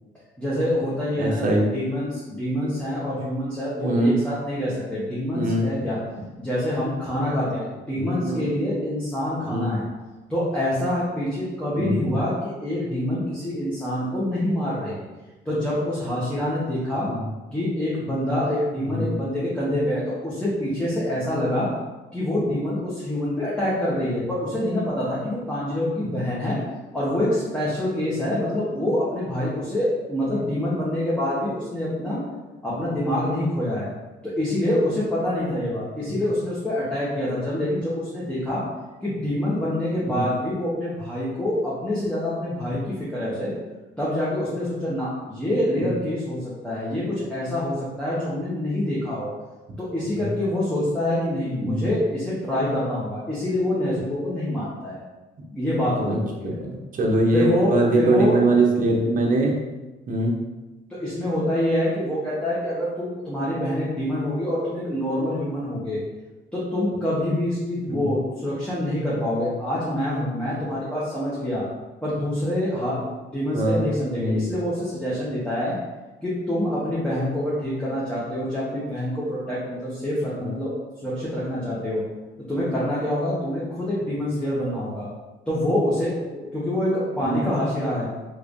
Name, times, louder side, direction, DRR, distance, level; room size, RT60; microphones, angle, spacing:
voice 1, 0.4-6.0 6.4-9.9 10.3-15.0 15.4-17.1 17.5-21.7 22.1-26.6 26.9-32.2 32.6-33.9 34.2-38.6 39.0-43.5 44.0-49.3 49.8-55.0 55.5-56.6 57.3-58.4 61.0-66.0 66.5-71.6 72.0-75.7 76.2-80.7 81.0-82.0 82.5-85.1 85.5-88.1, left 1 dB, 5° left, -9 dB, 1.0 m, -26 dB
voice 2, 1.2-1.7 3.8-4.2 5.3-5.7 8.2-8.4 9.5-9.7 11.8-12.2 17.0-17.2 18.9-19.1 26.1-26.2 36.0-36.1 40.0-40.2 45.8-45.9 50.2-50.3 51.6-51.9 56.0-56.2 56.4-59.6 60.1-60.3 67.9-68.1 73.4-73.8 74.1-74.5 80.3-80.4 87.2-87.6, right 1 dB, 45° right, 0 dB, 0.8 m, -22 dB
3.2 x 3.2 x 2.6 m, 1.1 s
cardioid pair, 90°, 20 cm